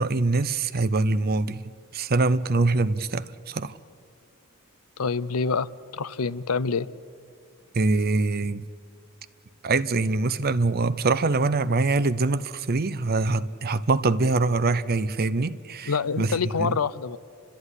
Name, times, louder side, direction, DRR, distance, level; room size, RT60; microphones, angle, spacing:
voice 1, 0.0-3.8 7.7-8.6 9.6-16.3 16.6-16.8, right 3 dB, 45° right, 0.7 m, -24 dB
voice 2, 5.0-6.9 15.9-17.2, left 5 dB, 80° left, 0.6 m, -26 dB
29.5 x 13.0 x 9.7 m
head